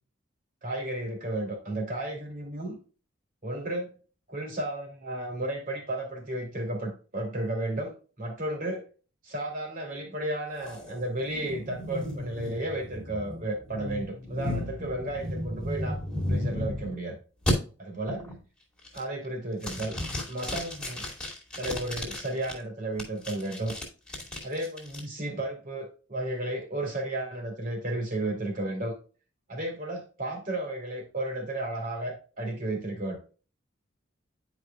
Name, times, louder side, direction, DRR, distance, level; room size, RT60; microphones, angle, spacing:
voice 1, 0.6-2.8 3.4-3.9 4.3-8.8 9.2-16.0 16.3-17.2 17.8-18.3 18.9-20.0 20.3-21.0 21.6-23.8 24.4-28.9 29.5-33.2, right 1 dB, 45° right, 2 dB, 2.8 m, -33 dB
sound 1, 10.6-17.0 17.5-17.6 18.1-18.4 18.8-19.3 19.6-22.5 23.0-25.0, left 1 dB, 5° left, 2.3 m, -34 dB
10.5 x 5.1 x 2.2 m, 0.36 s
head